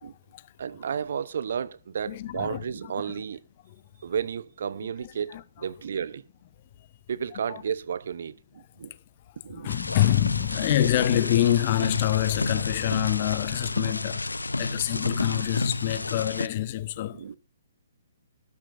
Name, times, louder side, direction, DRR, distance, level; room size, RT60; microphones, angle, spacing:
voice 1, 0.0-0.4 2.1-2.6 3.0-3.2 3.7-3.8 5.0-5.4 7.3-7.6 9.5-14.3 14.6-17.2, left 13 dB, 40° left, 0.8 m, -26 dB
voice 2, 0.6-3.4 4.0-6.2 7.1-8.9 9.4-9.8 14.9-15.0 17.1-17.4, right 7 dB, 60° right, 0.8 m, -32 dB
sound 1, 9.7-16.5, left 2 dB, 85° left, 0.6 m, -31 dB
18.5 x 12.5 x 2.6 m
figure-of-eight pair, 130°, 0 cm